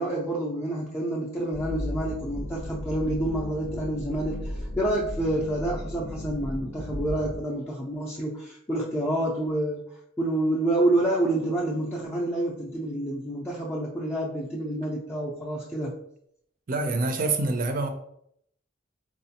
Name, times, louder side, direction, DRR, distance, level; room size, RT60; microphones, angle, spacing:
voice 1, 0.0-9.8 10.2-15.9, right 1 dB, 15° left, -4 dB, 0.4 m, -28 dB
sound 1, 1.5-7.4, left 1 dB, 60° left, 0.6 m, -35 dB
voice 2, 16.7-17.9, right 3 dB, 45° right, 6 dB, 0.5 m, -26 dB
4.1 x 2.3 x 2.8 m, 0.70 s
head